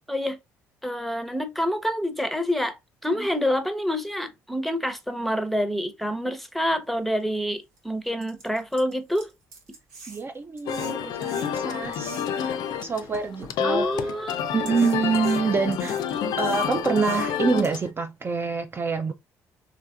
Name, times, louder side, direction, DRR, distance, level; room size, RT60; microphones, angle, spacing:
voice 1, 0.8-9.3 13.6-14.7 15.8-15.9 16.2-16.3, equal, ahead, 0.7 m, -27 dB
sound 1, 7.2-7.3 7.8-7.9 8.2-12.5 13.1-14.1 14.7-17.7, right 3 dB, 85° right, 0.9 m, -45 dB
voice 2, 10.1-14.1 14.5-16.0 16.4-19.1, right 5 dB, 30° right, 0.4 m, -26 dB
sound 2, 10.7-17.9, left 8 dB, 65° left, 0.4 m, -29 dB
3.3 x 2.8 x 2.3 m
hypercardioid pair, 50°, 8 cm